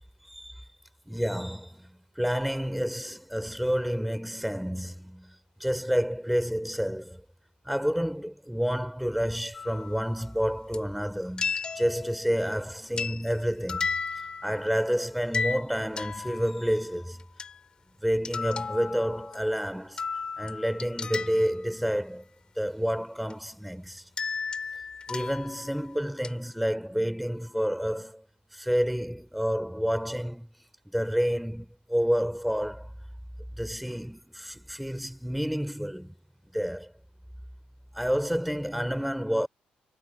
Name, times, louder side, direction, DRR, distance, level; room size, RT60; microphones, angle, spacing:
voice 1, 0.2-0.6 1.1-7.2 7.6-17.2 18.0-20.0 20.4-22.3 22.6-24.1 25.1-28.2 28.5-30.5 30.9-32.9 33.6-36.1 36.5-36.9 37.9-39.5, equal, ahead, 5.4 m, -29 dB
sound 1, 9.5-10.1 10.7-10.8 11.4-12.5 13.0-13.4 13.7-14.8 15.3-16.8 17.2-17.7 18.2-19.6 20.0-21.7 23.3-23.4 24.2-25.9 26.2-26.3, left 5 dB, 30° left, 3.8 m, -34 dB
cardioid pair, 155°, 3 cm